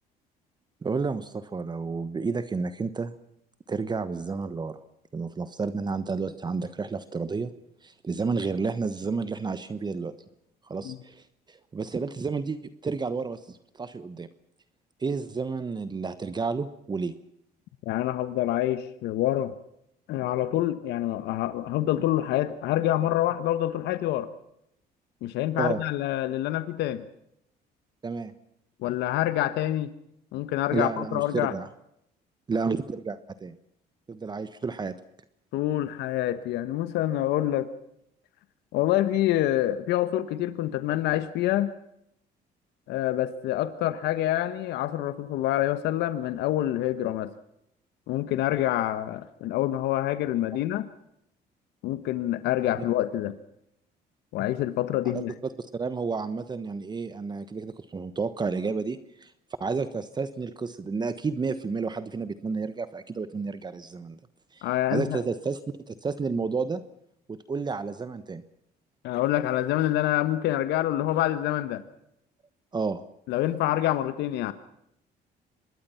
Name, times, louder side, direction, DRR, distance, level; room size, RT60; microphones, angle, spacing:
voice 1, 0.8-3.1 3.7-4.8 5.1-7.5 7.8-10.1 10.6-14.3 15.0-17.1 25.6-25.8 28.0-28.3 30.7-31.7 32.5-33.5 34.1-34.9 55.1-55.2 55.6-59.3 59.6-64.2 64.5-65.6 65.9-66.8 67.3-68.4 72.7-73.0, right 4 dB, 25° right, 13 dB, 1.2 m, -31 dB
voice 2, 17.8-19.5 20.1-24.3 25.2-27.0 28.8-29.9 30.3-31.5 35.5-37.7 38.7-41.7 42.9-47.3 48.1-50.9 51.8-53.4 54.3-55.3 64.6-65.2 69.0-71.8 73.3-74.5, left 13 dB, 85° left, 12 dB, 1.3 m, -26 dB
25.5 x 21.0 x 5.8 m, 0.77 s
cardioid pair, 110°, 17 cm